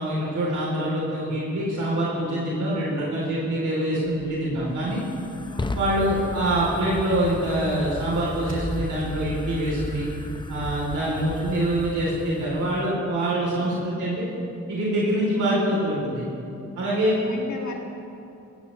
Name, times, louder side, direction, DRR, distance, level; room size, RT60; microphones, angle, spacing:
voice 1, 0.0-5.0 5.7-10.1 10.5-14.3 14.7-16.2 16.8-17.2, right 1 dB, 80° right, -6 dB, 3.4 m, -25 dB
Fire, 4.1-13.0, left 2 dB, 15° left, 0.8 m, -36 dB
voice 2, 4.8-5.1 5.5-6.1 13.6-14.2 16.9-17.7, left 3 dB, 70° left, 0 dB, 2.3 m, -39 dB
sound 1, 7.9-11.2, left 1 dB, 55° right, 2.8 m, -37 dB
16.5 x 15.0 x 3.2 m, 2.7 s
cardioid pair, 70°, 30 cm